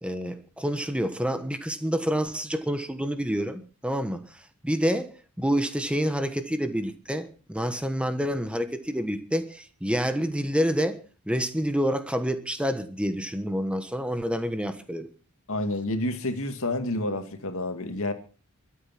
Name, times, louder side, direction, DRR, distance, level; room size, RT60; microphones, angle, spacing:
voice 1, 0.0-4.2 4.6-5.1 5.4-11.0 11.3-15.1, equal, 5° right, 1.3 m, -28 dB
voice 2, 15.5-18.1, left 2 dB, 65° left, 2.3 m, -29 dB
23.0 x 8.5 x 6.0 m
head